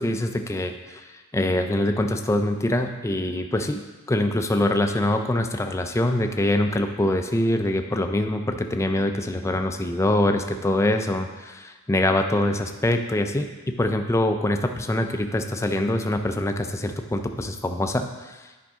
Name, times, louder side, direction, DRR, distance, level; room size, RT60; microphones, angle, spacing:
voice 1, 0.0-18.5, left 1 dB, 15° left, 6 dB, 0.4 m, -24 dB
10.0 x 5.2 x 3.6 m, 1.2 s
head